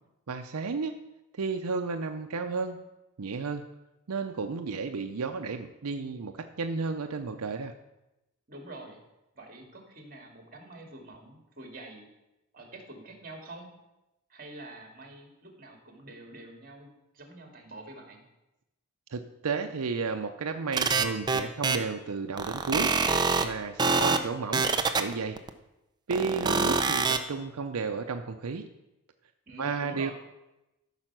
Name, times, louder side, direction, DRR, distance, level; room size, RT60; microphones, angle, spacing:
voice 1, 0.3-1.0 1.3-2.8 3.2-3.6 4.1-7.7 19.1-24.7 24.9-25.4 26.1-28.7 29.6-30.1, right 4 dB, 85° right, 6 dB, 0.6 m, -33 dB
voice 2, 8.5-9.0 9.4-12.1 12.5-13.7 14.3-16.9 17.1-18.2 29.5-30.1, right 2 dB, 40° right, 3 dB, 2.1 m, -46 dB
sound 1, 20.7-21.8 22.4-23.4 23.8-24.2 24.5-25.5 26.1-27.2, right 4 dB, 20° right, 0.6 m, -25 dB
13.5 x 5.7 x 6.0 m, 0.95 s
head